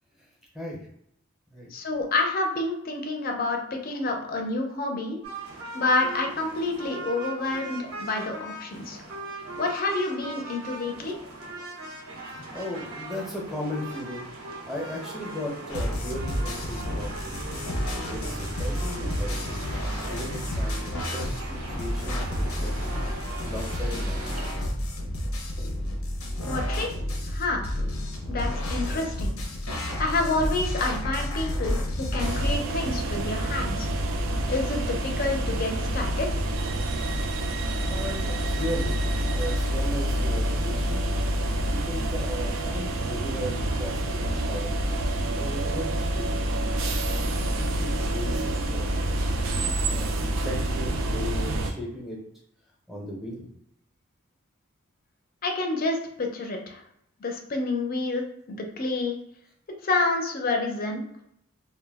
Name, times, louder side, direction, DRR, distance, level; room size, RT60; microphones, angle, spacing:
voice 1, 1.7-5.2 5.7-9.0 9.6-11.2 26.5-26.9 27.3-27.6 28.3-29.4 30.0-33.9 34.5-36.3 55.4-56.8 57.2-59.2 59.8-61.0, left 2 dB, 45° left, 3 dB, 0.5 m, -28 dB
sound 1, 5.2-24.5, right 2 dB, 90° right, 0.7 m, -39 dB
voice 2, 12.5-17.4 18.0-19.6 20.0-22.8 23.4-24.7 27.9-28.0 37.7-39.0 39.3-41.1 41.7-44.8 45.3-48.8 49.5-52.2 52.9-53.5, left 1 dB, ahead, -3 dB, 0.7 m, -37 dB
sound 2, 15.7-32.6, left 1 dB, 90° left, 0.6 m, -30 dB
sound 3, 32.2-51.7, right 1 dB, 65° right, 0.4 m, -27 dB
2.2 x 2.1 x 3.4 m, 0.75 s
head